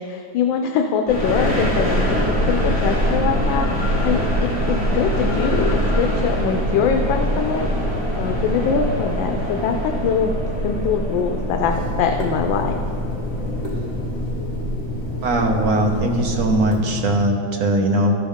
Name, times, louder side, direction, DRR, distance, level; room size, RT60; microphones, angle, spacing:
voice 1, 0.0-2.2 2.5-7.7 8.2-10.3 10.6-12.8, left 6 dB, 85° left, 4 dB, 1.3 m, -23 dB
sound 1, 1.1-16.7, equal, 5° right, 2.2 m, -23 dB
Water tap faucet / Sink (filling or washing), 11.7-17.2, left 2 dB, 30° left, 1.1 m, -30 dB
voice 2, 15.2-18.2, right 1 dB, 55° right, 2 dB, 1.2 m, -20 dB
13.5 x 6.3 x 3.5 m, 2.2 s
omnidirectional pair, 2.1 m